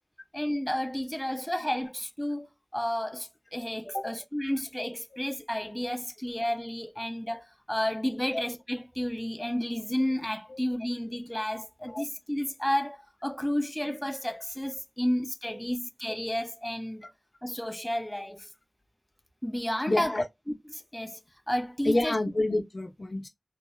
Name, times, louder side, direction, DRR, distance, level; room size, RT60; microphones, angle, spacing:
voice 1, 0.3-2.5 2.7-17.1 17.4-18.5 19.4-21.2 21.5-22.1, equal, 10° left, 0.4 m, -31 dB
voice 2, 19.9-20.2 21.8-23.3, left 2 dB, 70° left, 0.6 m, -28 dB
2.6 x 2.1 x 2.2 m
wide cardioid pair, 45°, 0 cm